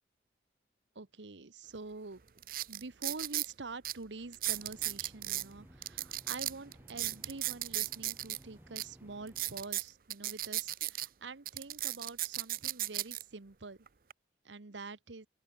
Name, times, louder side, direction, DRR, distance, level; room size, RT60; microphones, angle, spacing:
voice 1, 0.9-2.2 2.7-13.8 14.4-15.3, right 3 dB, 90° right, 1.1 m, -46 dB
sound 1, 1.7-1.8 2.4-3.5 3.8-3.9 4.3-5.5 5.8-8.4 8.8-8.9 9.3-11.1 11.5-13.2 13.9-14.1, right 15 dB, 50° right, 0.6 m, -35 dB
sound 2, 4.5-9.6, equal, 10° right, 3.2 m, -58 dB
open air
head